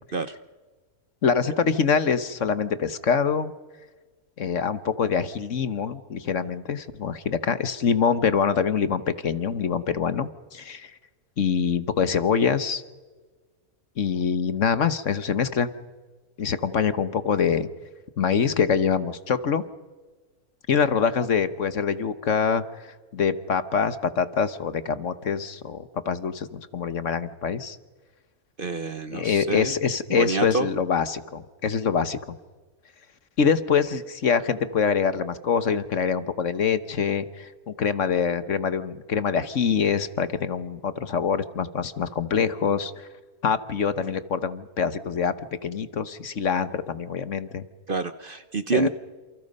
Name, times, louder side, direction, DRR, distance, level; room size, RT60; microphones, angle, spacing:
voice 1, 1.2-3.5 4.4-10.9 11.4-12.8 14.0-15.7 16.4-17.7 18.2-19.6 20.7-27.8 29.1-32.2 33.4-43.1 43.4-45.3 45.6-47.6 48.7-48.9, left 6 dB, 55° left, 12 dB, 1.4 m, -25 dB
voice 2, 28.6-29.7 30.1-30.7 47.9-48.9, right 4 dB, 40° right, 11 dB, 0.9 m, -27 dB
29.0 x 28.5 x 5.4 m, 1.3 s
omnidirectional pair, 1.6 m